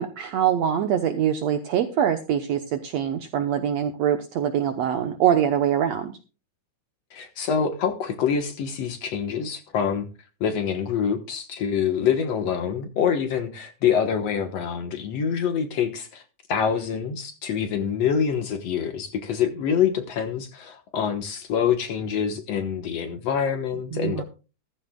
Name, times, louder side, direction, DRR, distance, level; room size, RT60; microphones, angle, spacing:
voice 1, 0.0-6.1 23.9-24.2, right 9 dB, 65° right, 8 dB, 1.9 m, -24 dB
voice 2, 7.1-10.1 10.4-16.2 16.5-24.2, left 7 dB, 60° left, 7 dB, 2.1 m, -25 dB
15.0 x 14.5 x 2.3 m, 0.32 s
omnidirectional pair, 3.6 m